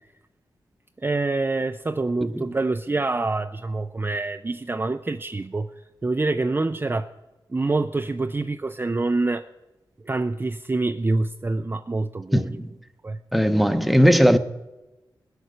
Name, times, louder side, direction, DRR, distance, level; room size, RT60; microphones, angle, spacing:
voice 1, 1.0-7.1 7.5-9.5 10.0-12.6 13.0-13.2, right 3 dB, 25° right, 0.4 m, -26 dB
voice 2, 12.3-12.7 13.3-14.4, equal, ahead, 0.8 m, -18 dB
18.5 x 8.0 x 6.5 m
cardioid pair, 70°, 9 cm